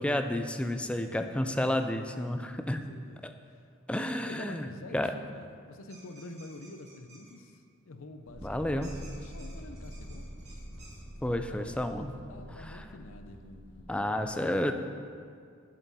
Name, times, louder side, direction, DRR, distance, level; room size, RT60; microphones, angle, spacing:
voice 1, 0.0-2.8 3.2-3.3 3.9-5.1 8.4-8.9 11.2-12.1 12.5-12.8 13.9-14.7, left 1 dB, 5° left, 7 dB, 0.3 m, -31 dB
voice 2, 0.9-1.6 2.7-3.2 4.2-8.8 9.2-10.6 11.5-13.9 14.2-14.4, left 2 dB, 75° left, 7 dB, 0.6 m, -48 dB
sound 1, 5.9-7.3 8.8-11.0, right 3 dB, 35° right, 2.0 m, -54 dB
sound 2, 8.3-14.2, equal, 60° left, 1.6 m, -45 dB
8.2 x 7.5 x 4.1 m, 2.2 s
head